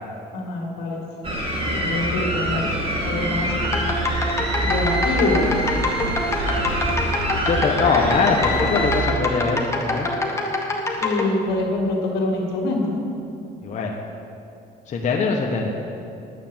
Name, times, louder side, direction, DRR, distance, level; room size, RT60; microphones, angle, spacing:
voice 1, 0.3-1.0 1.7-2.7 3.0-3.5 4.6-5.5 11.0-12.9, left 2 dB, 80° left, 0 dB, 2.3 m, -24 dB
sound 1, 1.2-9.1, right 1 dB, 35° right, 2.5 m, -25 dB
sound 2, 3.6-11.3, left 2 dB, 15° left, 1.4 m, -25 dB
voice 2, 7.5-10.1 13.6-13.9 14.9-15.7, left 4 dB, 45° left, -1 dB, 1.2 m, -22 dB
10.0 x 8.2 x 7.6 m, 2.6 s
cardioid pair, 110°, 17 cm